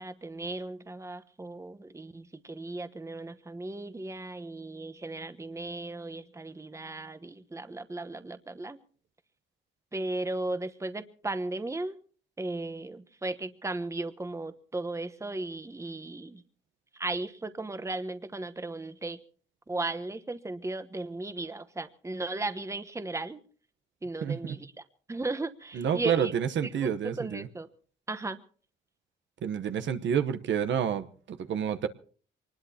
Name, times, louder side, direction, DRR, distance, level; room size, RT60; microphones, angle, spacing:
voice 1, 0.0-8.8 9.9-12.0 12.4-16.4 16.9-19.2 19.7-23.4 24.0-24.8 25.1-26.3 26.6-27.7 28.1-28.4, right 2 dB, 15° right, 1.1 m, -36 dB
voice 2, 24.2-24.6 25.7-27.5 29.4-31.9, right 8 dB, 70° right, 1.1 m, -29 dB
24.0 x 20.0 x 2.9 m
cardioid pair, 95°, 20 cm